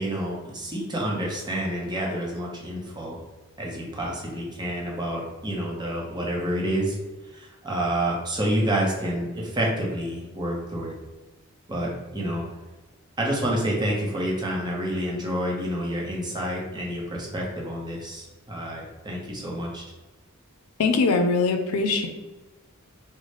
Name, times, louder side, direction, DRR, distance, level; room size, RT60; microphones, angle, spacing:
voice 1, 0.0-3.2 3.6-7.0 7.3-10.9 11.7-12.4 13.2-19.8, right 1 dB, 20° right, -2 dB, 0.7 m, -28 dB
voice 2, 20.8-22.1, left 4 dB, 75° left, 6 dB, 0.4 m, -22 dB
3.9 x 2.1 x 3.3 m, 1.2 s
head